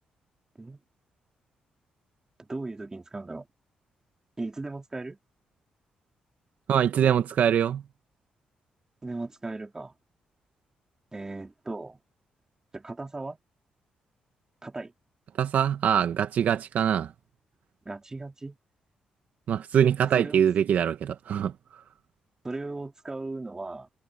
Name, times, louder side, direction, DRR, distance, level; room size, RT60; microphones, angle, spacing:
voice 1, 2.4-3.5 4.4-5.2 9.0-9.9 11.1-12.0 12.7-13.4 14.6-14.9 17.8-18.6 20.2-20.4 22.4-23.9, right 2 dB, 20° right, 3.0 m, -37 dB
voice 2, 6.7-7.8 15.4-17.1 19.5-21.5, right 9 dB, 70° right, 1.2 m, -23 dB
cardioid pair, 75°, 3 cm